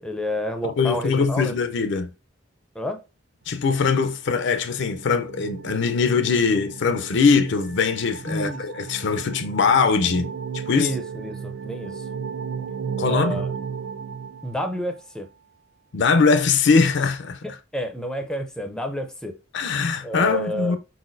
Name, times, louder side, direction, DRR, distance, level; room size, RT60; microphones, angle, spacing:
voice 1, 0.0-1.6 2.7-3.0 8.3-8.6 10.7-12.1 13.1-13.5 14.4-15.3 17.7-19.3 20.0-20.8, equal, 5° left, 0.5 m, -29 dB
voice 2, 0.6-2.1 3.5-10.3 10.5-10.9 13.0-13.4 15.9-17.4 19.5-20.8, left 5 dB, 65° left, 0.5 m, -21 dB
sound 1, 4.5-15.0, right 6 dB, 60° right, 0.5 m, -34 dB
4.5 x 4.1 x 2.5 m
head